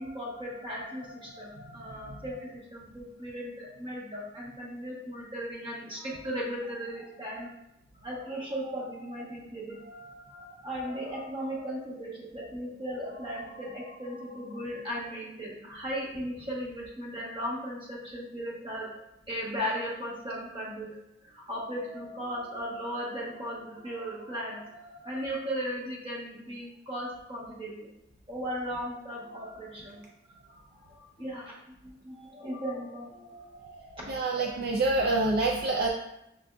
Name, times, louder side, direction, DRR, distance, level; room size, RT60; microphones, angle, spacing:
voice 1, 0.0-7.5 8.0-18.9 19.3-20.9 21.2-27.7 28.3-30.1 30.3-34.6, equal, 30° right, -5 dB, 1.0 m, -37 dB
voice 2, 34.1-35.9, right 2 dB, 55° right, -1 dB, 0.3 m, -26 dB
6.2 x 2.5 x 2.3 m, 0.83 s
head